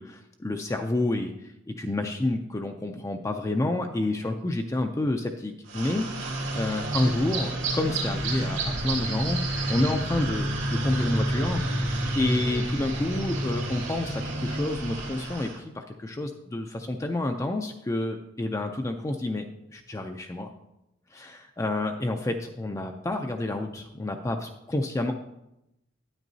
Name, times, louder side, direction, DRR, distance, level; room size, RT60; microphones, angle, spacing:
voice 1, 0.0-1.3 1.8-6.1 6.5-20.5 21.1-25.1, left 2 dB, 15° left, 4 dB, 0.4 m, -29 dB
sound 1, 5.7-15.6, right 1 dB, 85° right, 2.2 m, -29 dB
9.1 x 8.7 x 2.7 m, 0.86 s
head